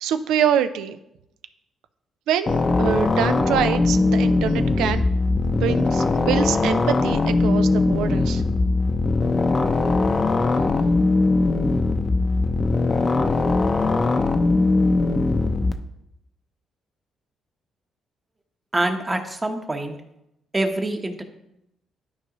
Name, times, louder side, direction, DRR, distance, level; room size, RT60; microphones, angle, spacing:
voice 1, 0.0-1.0 2.3-5.1 5.4-8.4, right 9 dB, 90° right, 10 dB, 0.4 m, -25 dB
sound 1, 2.5-15.7, left 3 dB, 30° left, 0.6 m, -20 dB
voice 2, 18.7-20.0 20.5-21.2, right 1 dB, 20° right, 5 dB, 1.0 m, -25 dB
12.0 x 4.7 x 3.0 m, 0.84 s
cardioid pair, 90°, 0 cm